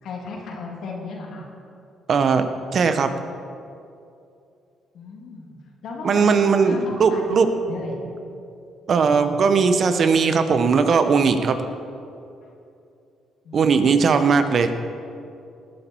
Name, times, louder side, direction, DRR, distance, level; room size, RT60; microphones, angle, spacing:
voice 1, 0.0-1.5 4.9-5.5 5.8-8.0 12.4-12.5 13.4-14.2, left 3 dB, 70° left, -1 dB, 2.8 m, -35 dB
voice 2, 2.1-2.5 2.7-3.1 6.0-7.5 8.9-11.6 13.5-14.7, right 5 dB, 55° right, 9 dB, 1.0 m, -18 dB
19.0 x 8.7 x 4.6 m, 2.6 s
cardioid pair, 75°, 0 cm